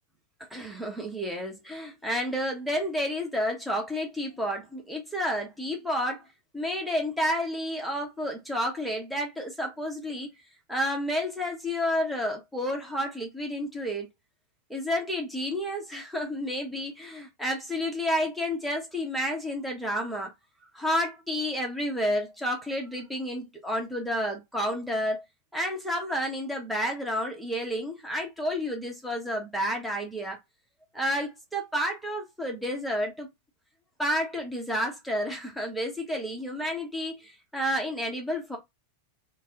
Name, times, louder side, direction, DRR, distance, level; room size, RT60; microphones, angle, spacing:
voice 1, 0.5-6.2 6.5-10.3 10.7-14.1 14.7-20.3 20.7-25.2 25.5-30.4 30.9-33.3 34.0-38.6, equal, ahead, 1.0 m, -30 dB
3.3 x 2.2 x 2.8 m
figure-of-eight pair, 90°, 0 cm